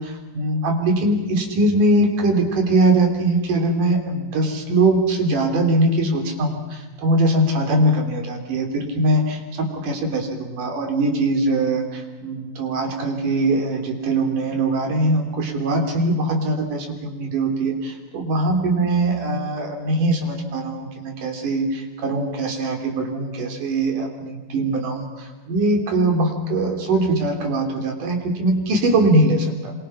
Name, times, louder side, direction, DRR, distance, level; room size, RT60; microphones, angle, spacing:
voice 1, 0.0-29.7, right 2 dB, 65° right, 3 dB, 4.7 m, -21 dB
28.0 x 26.0 x 5.8 m, 1.2 s
omnidirectional pair, 4.0 m